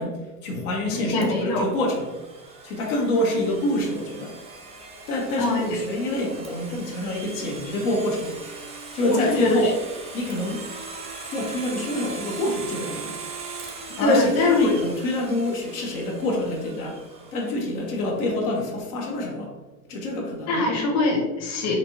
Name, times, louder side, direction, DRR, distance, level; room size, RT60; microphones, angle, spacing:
voice 1, 0.0-2.2 2.6-4.4 5.1-8.4 8.7-9.8 10.1-10.6 11.3-13.1 14.0-17.0 17.3-19.5 19.9-20.6, left 1 dB, 75° left, -1 dB, 1.1 m, -27 dB
voice 2, 0.9-1.6 5.4-5.7 9.0-9.6 14.0-14.7 20.5-21.7, left 2 dB, 35° left, -2 dB, 1.1 m, -22 dB
Domestic sounds home sounds, 1.2-18.0, right 4 dB, 15° right, 0.4 m, -40 dB
4.3 x 2.7 x 2.9 m, 1.1 s
supercardioid pair, 120°, 45 cm